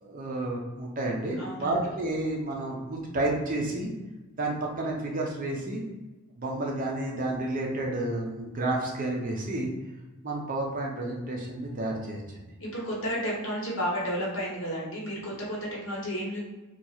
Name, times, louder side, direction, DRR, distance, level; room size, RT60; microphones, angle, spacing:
voice 1, 0.0-3.9 4.4-5.8 6.4-9.7 10.2-12.2, right 2 dB, 40° right, -1 dB, 0.6 m, -30 dB
voice 2, 1.4-1.7 12.6-16.4, equal, 60° left, -4 dB, 1.1 m, -32 dB
2.9 x 2.3 x 4.2 m, 1.1 s
head